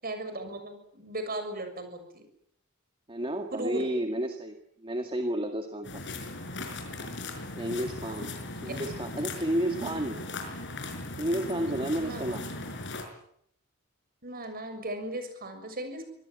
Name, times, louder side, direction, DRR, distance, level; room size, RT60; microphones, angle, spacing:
voice 1, 0.0-2.2 3.5-3.9 8.0-8.3 8.7-8.8 12.0-12.5 14.2-16.1, right 1 dB, 45° right, 8 dB, 6.7 m, -37 dB
voice 2, 3.1-4.6 4.8-6.0 7.6-8.4 8.6-10.2 11.2-12.5, right 1 dB, 25° right, 5 dB, 2.0 m, -31 dB
sound 1, 5.8-13.1, left 2 dB, 55° left, 5.6 m, -38 dB
26.0 x 19.0 x 9.2 m, 0.71 s
head